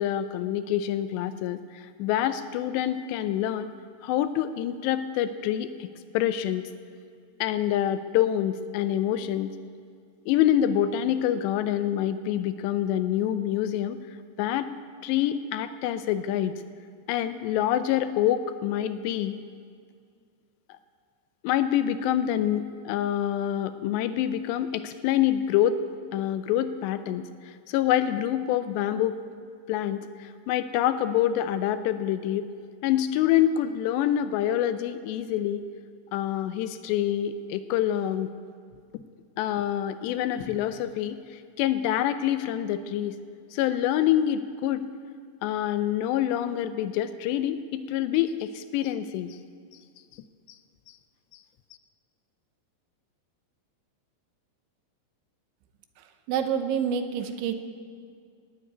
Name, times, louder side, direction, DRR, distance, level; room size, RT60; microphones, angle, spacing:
voice 1, 0.0-3.7 4.0-5.9 6.1-6.7 7.4-9.5 10.3-14.0 14.4-14.7 15.0-16.5 17.1-19.4 21.4-25.8 26.1-29.2 29.7-32.5 32.8-35.6 36.1-38.3 39.4-41.2 41.6-43.1 43.5-44.8 45.4-49.4, left 11 dB, 85° left, 11 dB, 2.7 m, -26 dB
voice 2, 56.3-57.5, right 7 dB, 90° right, 8 dB, 3.3 m, -27 dB
17.5 x 8.4 x 9.5 m, 2.2 s
omnidirectional pair, 5.2 m